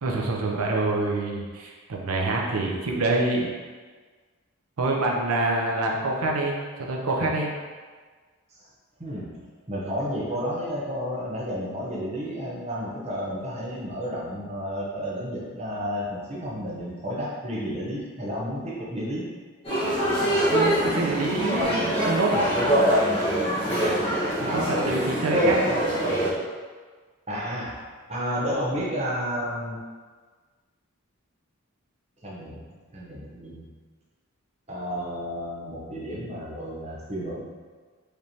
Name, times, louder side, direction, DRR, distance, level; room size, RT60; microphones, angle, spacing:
voice 1, 0.0-3.5 4.8-7.5 20.5-22.5 24.4-25.7, right 2 dB, 85° right, -1 dB, 0.6 m, -26 dB
voice 2, 9.0-19.3 23.7-24.1 24.5-26.0 27.3-27.8 28.1-29.8 32.2-32.6 32.9-33.7 34.7-37.4, equal, 30° right, -5 dB, 0.7 m, -32 dB
sound 1, 19.6-26.3, equal, 25° left, 1.3 m, -23 dB
5.0 x 3.1 x 2.8 m, 1.5 s
head